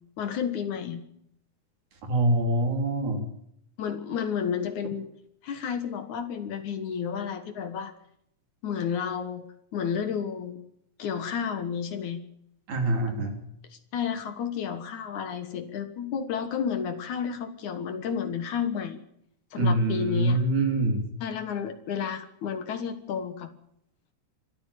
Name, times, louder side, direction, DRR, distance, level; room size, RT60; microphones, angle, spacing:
voice 1, 0.2-1.0 3.8-5.1 5.4-7.9 8.6-9.5 9.7-10.6 11.0-12.2 13.7-19.0 19.5-20.4 21.2-23.5, left 7 dB, 65° left, 10 dB, 2.6 m, -31 dB
voice 2, 2.0-3.2 12.7-13.4 19.6-21.1, right 1 dB, 60° right, 4 dB, 4.7 m, -25 dB
24.0 x 13.5 x 8.4 m, 0.72 s
omnidirectional pair, 4.0 m